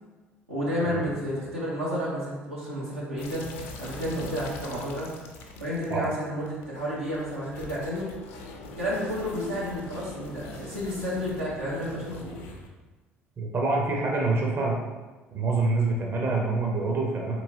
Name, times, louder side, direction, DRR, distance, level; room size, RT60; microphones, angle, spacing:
voice 1, 0.5-3.5 3.8-5.1 5.6-8.1 8.8-12.4, equal, 80° right, -7 dB, 0.9 m, -31 dB
sound 1, 3.2-12.7, left 2 dB, 60° left, 0.5 m, -43 dB
voice 2, 13.4-14.8 15.3-17.4, right 3 dB, 35° right, -1 dB, 0.7 m, -26 dB
4.0 x 3.0 x 2.7 m, 1.2 s
figure-of-eight pair, 55°, 7 cm